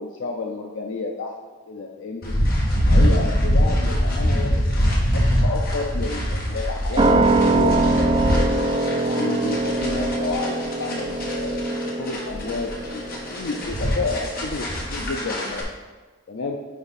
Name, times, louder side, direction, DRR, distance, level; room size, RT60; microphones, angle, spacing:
voice 1, 0.0-1.4 1.7-2.4 2.9-8.5 9.0-13.0 13.3-15.7 16.3-16.6, left 3 dB, 75° left, 2 dB, 0.5 m, -30 dB
sound 1, 2.2-15.6, equal, 50° left, 1.4 m, -23 dB
sound 2, 7.0-14.0 14.3-14.4, right 2 dB, 25° right, 0.5 m, -23 dB
9.4 x 3.5 x 4.1 m, 1.3 s
head